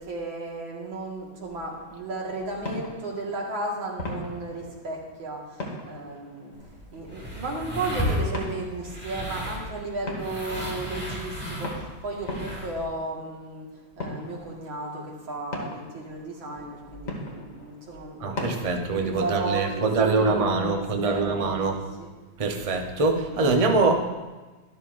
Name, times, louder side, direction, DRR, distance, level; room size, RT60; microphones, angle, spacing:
voice 1, 0.0-6.5 6.9-13.7 14.0-22.1, right 2 dB, 90° right, -2 dB, 2.6 m, -34 dB
sound 1, 1.5-19.0, left 1 dB, 45° left, 1.8 m, -40 dB
sound 2, 6.5-12.8, equal, 5° right, 2.3 m, -34 dB
voice 2, 18.2-21.8 22.4-23.9, right 3 dB, 45° right, 3 dB, 0.4 m, -24 dB
12.5 x 12.5 x 2.5 m, 1.2 s
omnidirectional pair, 2.1 m